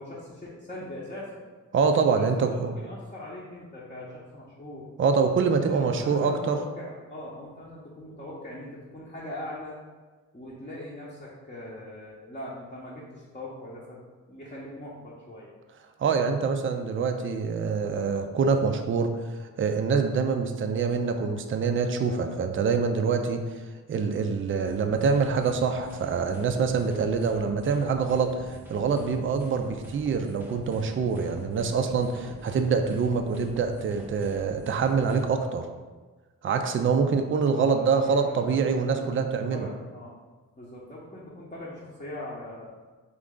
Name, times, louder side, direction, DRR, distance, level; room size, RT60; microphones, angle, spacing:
voice 1, 0.0-1.4 2.2-4.9 5.6-9.7 10.3-14.0 14.3-15.5 37.0-40.1 40.6-42.7, left 1 dB, 20° left, -6 dB, 0.8 m, -41 dB
voice 2, 1.7-2.8 5.0-6.6 16.0-19.1 19.6-23.5 23.9-35.7 36.4-39.7, right 5 dB, 35° right, 6 dB, 0.4 m, -25 dB
sound 1, 24.6-35.2, equal, 5° right, 0.8 m, -45 dB
3.1 x 2.4 x 3.7 m, 1.3 s
supercardioid pair, 50°, 35 cm